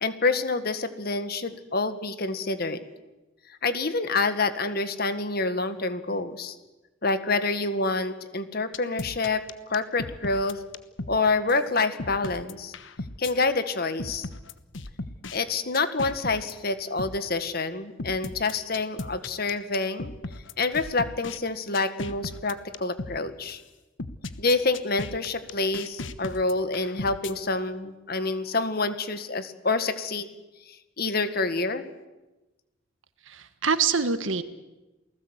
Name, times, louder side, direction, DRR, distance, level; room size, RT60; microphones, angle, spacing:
voice 1, 0.0-2.8 3.5-6.6 7.0-10.6 11.1-12.7 13.2-14.3 15.3-20.1 20.6-23.6 24.4-30.3 30.7-31.8, left 3 dB, 50° left, 10 dB, 1.8 m, -27 dB
sound 1, 8.7-11.2 11.5-11.6 12.0-13.3 14.0-15.4 15.7-16.5 17.0-17.2 18.0-21.4 21.7-23.2 23.5-23.6 24.0-27.3, left 2 dB, 70° left, 1.2 m, -36 dB
voice 2, 33.3-34.4, right 5 dB, 80° right, 11 dB, 1.6 m, -25 dB
29.0 x 19.0 x 8.2 m, 1.1 s
head